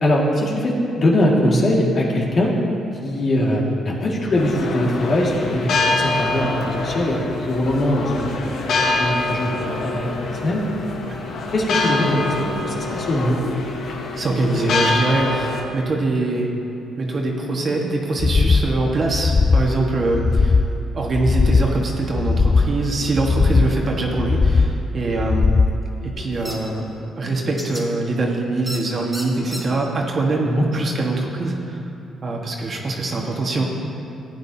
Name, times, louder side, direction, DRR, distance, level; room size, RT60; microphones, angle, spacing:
voice 1, 0.0-2.5 3.0-9.6 9.8-10.6 11.5-13.4 30.4-30.7, left 1 dB, 50° left, -3 dB, 2.0 m, -21 dB
sound 1, 4.3-15.6, left 3 dB, 70° left, 1.2 m, -25 dB
voice 2, 14.2-16.5 17.0-20.6 20.9-25.5 26.0-26.9 27.2-31.8 32.2-33.6, right 2 dB, 45° right, 0 dB, 1.5 m, -23 dB
sound 2, 18.2-18.7 19.1-19.7 20.1-20.7 21.1-21.7 22.1-22.7 23.1-23.7 24.1-24.7 25.1-25.7, left 4 dB, 30° left, 0.3 m, -18 dB
sound 3, 26.4-26.5 27.6-27.8 28.7-28.8 29.1-29.6, equal, 5° right, 2.2 m, -31 dB
15.0 x 9.5 x 2.8 m, 2.7 s
cardioid pair, 90°, 0 cm